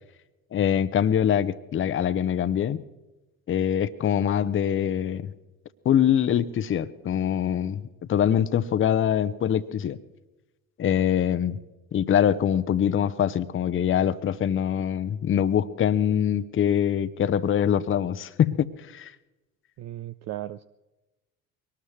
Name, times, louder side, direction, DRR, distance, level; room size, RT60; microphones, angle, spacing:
voice 1, 0.5-2.8 3.5-5.3 5.8-7.8 8.1-10.0 10.8-11.6 11.9-19.1, left 9 dB, 30° left, 14 dB, 0.8 m, -24 dB
voice 2, 19.8-20.6, right 14 dB, 45° right, 12 dB, 0.5 m, -36 dB
23.0 x 19.0 x 3.2 m, 1.1 s
figure-of-eight pair, 60°, 40 cm